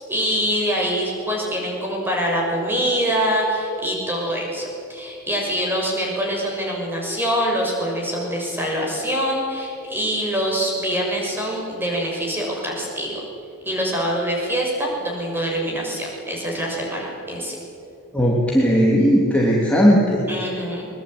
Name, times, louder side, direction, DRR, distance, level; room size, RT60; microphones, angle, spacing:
voice 1, 0.1-13.2 13.6-17.6 20.3-20.9, equal, 10° right, -1 dB, 6.3 m, -24 dB
voice 2, 18.1-20.2, equal, 5° left, -4 dB, 3.1 m, -17 dB
22.5 x 22.0 x 9.0 m, 2.6 s
head